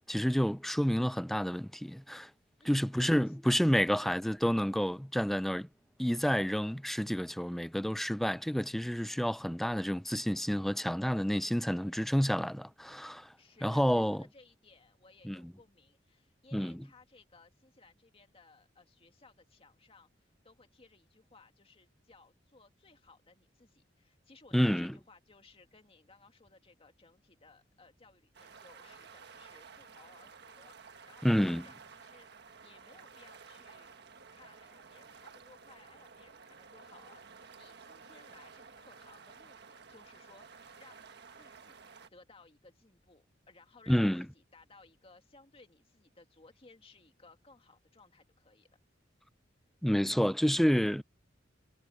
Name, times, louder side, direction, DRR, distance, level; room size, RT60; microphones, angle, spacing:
voice 1, 0.1-2.3 2.7-5.7 6.0-13.3 13.6-14.2 15.2-15.5 16.5-16.8 24.5-24.9 31.2-31.7 43.9-44.3 49.8-51.0, equal, ahead, 0.4 m, -29 dB
voice 2, 2.6-3.1 3.9-4.2 13.4-32.3 32.6-34.0 34.3-41.8 42.1-48.7, left 3 dB, 30° left, 2.4 m, -61 dB
sound 1, 28.3-42.1, right 5 dB, 60° right, 1.5 m, -53 dB
head